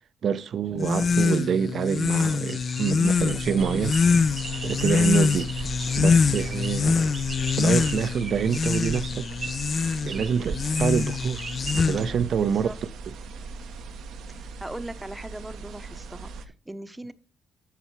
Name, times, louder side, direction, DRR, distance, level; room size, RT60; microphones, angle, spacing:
voice 1, 0.2-4.0 4.6-5.5 6.0-7.2 7.5-9.3 10.0-11.5 11.7-12.7, right 7 dB, 60° right, 0.6 m, -26 dB
sound 1, 0.8-12.3, left 5 dB, 45° left, 0.3 m, -24 dB
sound 2, 1.9-12.8, right 4 dB, 45° right, 1.1 m, -39 dB
sound 3, 3.6-16.5, right 4 dB, 80° right, 0.9 m, -40 dB
voice 2, 12.3-12.8 14.3-17.1, right 1 dB, 10° right, 0.7 m, -39 dB
8.2 x 7.0 x 4.6 m
cardioid pair, 90°, 0 cm